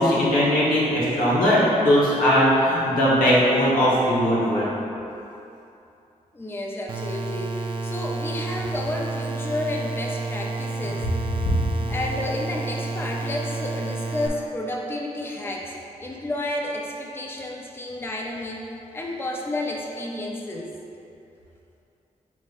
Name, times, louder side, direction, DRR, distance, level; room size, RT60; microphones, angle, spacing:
voice 1, 0.0-4.7, equal, 90° left, -8 dB, 1.1 m, -19 dB
voice 2, 6.3-11.1 11.9-15.7 16.0-20.7, left 1 dB, 15° left, -1 dB, 0.5 m, -31 dB
sound 1, 6.9-14.3, right 3 dB, 40° right, 0.4 m, -30 dB
5.8 x 3.4 x 2.4 m, 2.8 s
cardioid pair, 70°, 14 cm